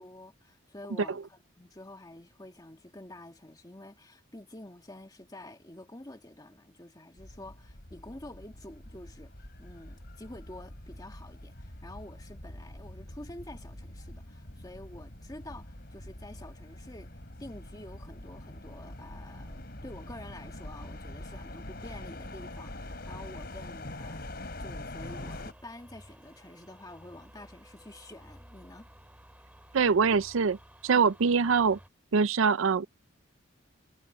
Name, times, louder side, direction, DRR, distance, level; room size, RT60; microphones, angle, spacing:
voice 1, 0.0-9.3 9.6-17.1 17.4-28.9, left 1 dB, 20° left, 1.7 m, -48 dB
sound 1, 7.2-25.5, left 1 dB, 50° left, 4.1 m, -44 dB
sound 2, 25.0-31.9, equal, 5° right, 2.5 m, -54 dB
voice 2, 29.7-30.6 30.8-31.8 32.1-32.9, right 5 dB, 75° right, 0.5 m, -23 dB
head